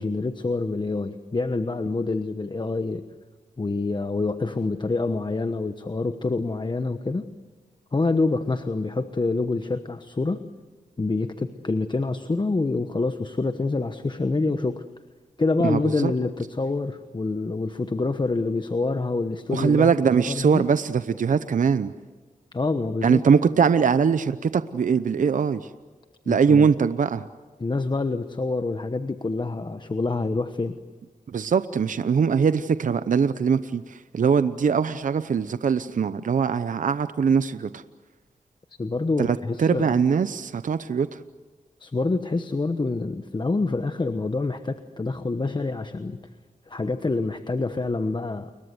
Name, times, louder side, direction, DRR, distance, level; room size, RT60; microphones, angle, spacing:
voice 1, 0.0-3.0 3.6-7.3 7.9-10.4 11.0-14.8 15.4-19.9 20.3-20.6 22.5-23.2 26.2-26.7 27.6-30.7 38.8-40.0 41.8-46.2 46.7-48.5, left 3 dB, 35° left, 9 dB, 1.1 m, -26 dB
voice 2, 15.6-16.1 19.5-21.9 23.0-25.7 26.3-27.3 31.3-37.8 39.2-41.2, right 6 dB, 65° right, 12 dB, 0.8 m, -22 dB
30.0 x 22.5 x 8.0 m, 1.3 s
cardioid pair, 65°, 14 cm